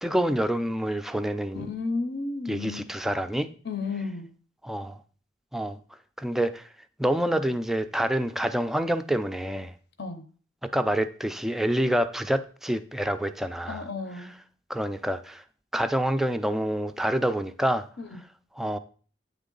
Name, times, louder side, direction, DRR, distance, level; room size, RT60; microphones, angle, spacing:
voice 1, 0.0-1.7 2.5-3.5 4.6-5.0 5.5-5.8 6.2-6.7 7.0-9.7 10.6-13.9 14.7-15.4 15.7-17.9 18.6-18.8, right 1 dB, ahead, 0.3 m, -27 dB
voice 2, 1.5-2.8 3.6-4.3 10.0-10.2 13.7-14.3 18.0-18.2, left 3 dB, 65° left, 0.7 m, -33 dB
9.0 x 3.6 x 3.8 m
head